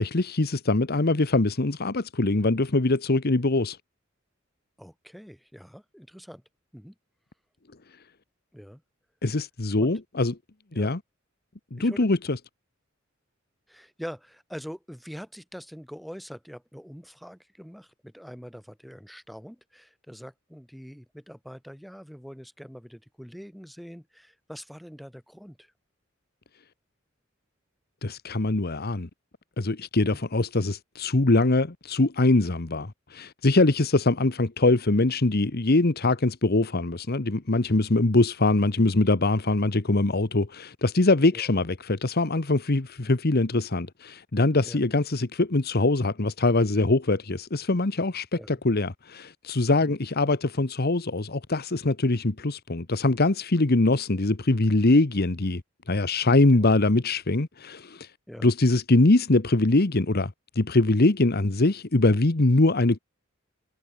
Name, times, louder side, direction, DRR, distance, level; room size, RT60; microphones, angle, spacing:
voice 1, 0.0-3.8 9.2-10.3 10.7-11.0 11.7-12.4 28.0-29.1 29.6-55.6 55.9-58.1 58.4-63.0, left 2 dB, 50° left, 1.2 m, -23 dB
voice 2, 4.8-6.4 6.7-6.9 8.5-8.8 9.8-9.9 10.7-10.9 11.8-12.1 13.7-25.7 30.1-30.2 41.3-41.5 44.6-44.8 48.3-48.6 56.5-56.7 58.3-58.5, equal, ahead, 5.3 m, -44 dB
head